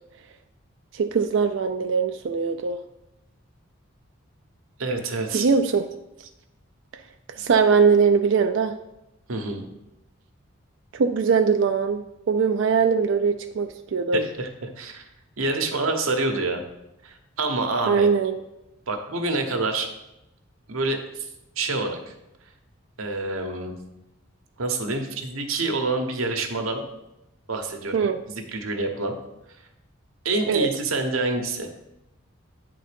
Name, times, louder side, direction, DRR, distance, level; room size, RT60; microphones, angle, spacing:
voice 1, 0.9-2.8 5.3-5.8 6.9-7.0 7.4-8.7 10.9-12.0 12.3-14.2 17.9-18.4 27.9-28.2 30.5-30.7, right 5 dB, 60° right, 7 dB, 0.3 m, -21 dB
voice 2, 4.8-5.4 9.3-9.6 14.1-15.0 15.4-16.6 17.0-18.1 18.9-19.9 20.7-21.3 21.6-22.1 23.0-23.7 24.6-26.8 27.5-29.1 30.2-31.7, right 3 dB, 85° right, 4 dB, 1.0 m, -27 dB
8.6 x 3.9 x 5.1 m, 0.90 s
head